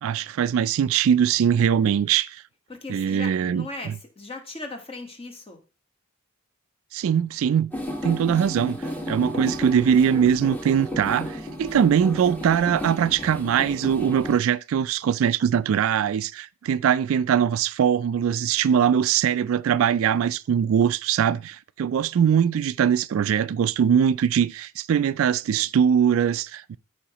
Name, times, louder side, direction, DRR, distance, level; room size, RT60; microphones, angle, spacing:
voice 1, 0.0-2.4 2.9-3.7 6.9-7.7 8.0-26.8, right 8 dB, 65° right, 0.3 m, -22 dB
voice 2, 2.7-5.6, left 2 dB, 25° left, 1.3 m, -38 dB
sound 1, 7.7-14.4, equal, 10° left, 1.2 m, -33 dB
13.0 x 4.9 x 2.9 m
head